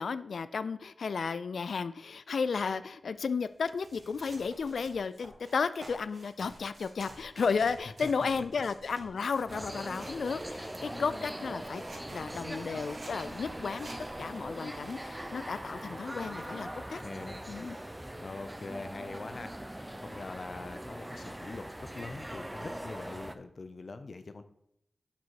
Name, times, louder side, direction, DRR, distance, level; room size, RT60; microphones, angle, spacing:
voice 1, 0.0-11.8 12.1-13.9 14.2-17.0 17.5-17.8, left 5 dB, 85° left, 14 dB, 0.3 m, -33 dB
sound 1, 3.4-10.9 11.4-15.0, right 1 dB, 60° right, 2.7 m, -51 dB
sound 2, 9.5-23.4, right 1 dB, 10° right, 0.6 m, -41 dB
voice 2, 10.8-11.3 17.0-17.4 18.2-19.6 20.0-24.4, left 3 dB, 60° left, 10 dB, 0.7 m, -43 dB
11.5 x 4.1 x 4.6 m, 0.76 s
cardioid pair, 65°, 0 cm